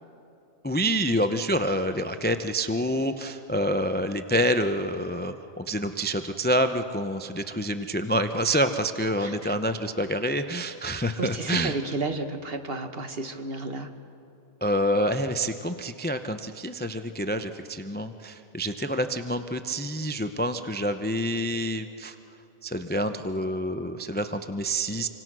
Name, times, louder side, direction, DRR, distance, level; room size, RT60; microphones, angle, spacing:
voice 1, 0.6-11.7 14.6-22.2 22.6-25.1, equal, 10° left, 8 dB, 0.5 m, -27 dB
voice 2, 9.2-9.5 11.2-13.9, right 3 dB, 45° right, 7 dB, 1.5 m, -32 dB
27.0 x 25.5 x 6.2 m, 2.8 s
omnidirectional pair, 1.4 m